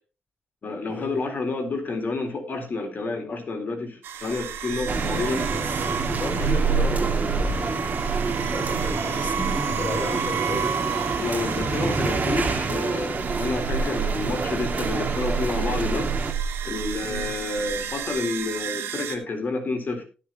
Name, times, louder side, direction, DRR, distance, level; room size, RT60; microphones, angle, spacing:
voice 1, 0.6-5.5 11.2-16.1 16.6-20.0, left 3 dB, 55° left, 4 dB, 3.9 m, -29 dB
sound 1, 4.0-19.2, right 6 dB, 90° right, 1.6 m, -29 dB
voice 2, 4.7-5.8 6.1-7.9 8.2-10.7 17.0-17.3, left 1 dB, 35° left, 0 dB, 6.8 m, -34 dB
sound 2, 4.9-16.3, right 3 dB, 45° right, 2.3 m, -28 dB
19.5 x 6.7 x 3.0 m, 0.34 s
cardioid pair, 65°, 4 cm